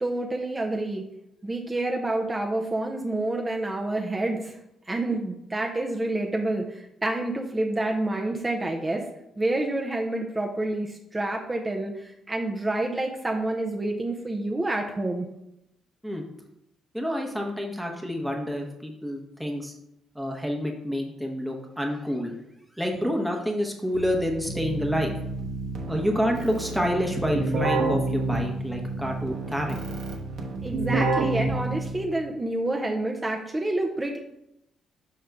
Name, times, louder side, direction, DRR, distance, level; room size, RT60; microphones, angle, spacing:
voice 1, 0.0-1.0 1.4-4.5 4.9-9.0 9.4-11.9 12.3-15.3 30.6-34.2, right 2 dB, 20° right, 1 dB, 0.7 m, -28 dB
voice 2, 16.9-19.7 20.1-22.3 22.8-25.1 25.9-30.0, equal, 5° right, 0 dB, 1.0 m, -28 dB
Keyboard (musical), 23.9-32.2, right 2 dB, 70° right, 1.1 m, -29 dB
5.3 x 5.1 x 3.5 m, 0.83 s
cardioid pair, 90°, 0 cm